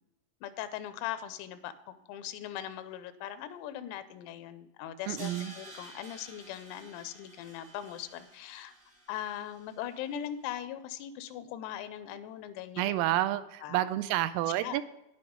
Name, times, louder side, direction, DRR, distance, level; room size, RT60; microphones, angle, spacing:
voice 1, 0.4-5.3 5.6-8.8 9.1-13.0 13.6-13.9 14.6-14.8, left 11 dB, 90° left, 12 dB, 3.5 m, -40 dB
voice 2, 5.1-5.6 12.8-14.8, right 14 dB, 85° right, 12 dB, 3.2 m, -29 dB
Crash cymbal, 5.2-10.2, right 1 dB, 40° right, 1.0 m, -52 dB
10.0 x 9.7 x 5.2 m, 0.87 s
omnidirectional pair, 5.9 m